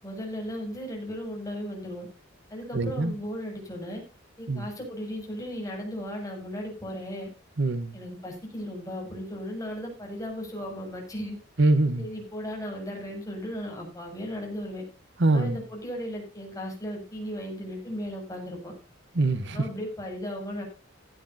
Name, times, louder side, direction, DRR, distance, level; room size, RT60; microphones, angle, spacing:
voice 1, 0.0-2.1 2.5-4.0 4.4-7.3 7.9-11.4 12.0-14.8 15.3-18.7 19.5-20.6, equal, 15° left, 7.1 m, -36 dB
voice 2, 2.7-3.1 4.5-4.7 7.6-7.9 11.6-12.1 15.2-15.6 19.1-19.6, right 2 dB, 60° right, 1.2 m, -23 dB
17.0 x 11.5 x 2.7 m
head